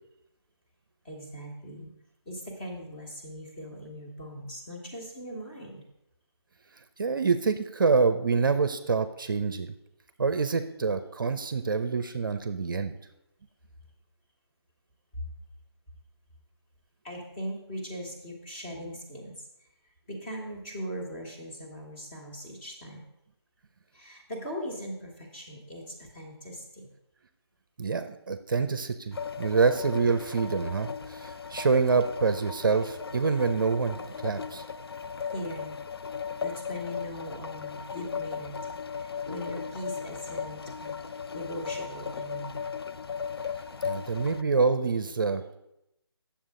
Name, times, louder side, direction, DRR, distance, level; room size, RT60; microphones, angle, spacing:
voice 1, 1.0-1.9 2.2-5.8 17.0-19.4 20.1-23.0 23.9-26.9 35.3-35.7 36.4-38.5 39.0-41.0 41.3-42.7, equal, 25° left, -3 dB, 1.7 m, -40 dB
voice 2, 7.0-9.7 10.2-13.0 27.8-34.6 43.8-45.6, right 4 dB, 50° right, 10 dB, 0.5 m, -26 dB
sound 1, 29.1-44.4, left 6 dB, 60° left, 0.4 m, -37 dB
8.7 x 7.2 x 3.7 m, 0.84 s
figure-of-eight pair, 160°, 14 cm